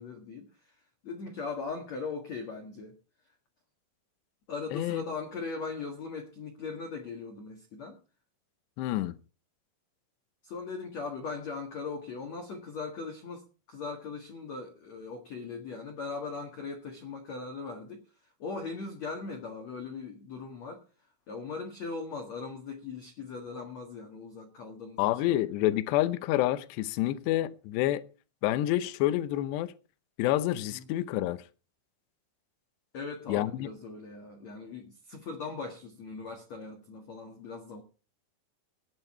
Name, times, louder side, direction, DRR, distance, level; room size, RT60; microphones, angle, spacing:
voice 1, 0.0-3.0 4.5-8.0 10.4-18.1 18.4-20.8 21.3-25.4 30.7-30.8 32.9-37.8, left 4 dB, 55° left, 2.0 m, -39 dB
voice 2, 4.7-5.0 8.8-9.2 25.0-28.1 28.4-29.7 30.2-31.4 33.3-33.7, left 14 dB, 80° left, 2.5 m, -28 dB
17.0 x 9.9 x 4.4 m
omnidirectional pair, 5.8 m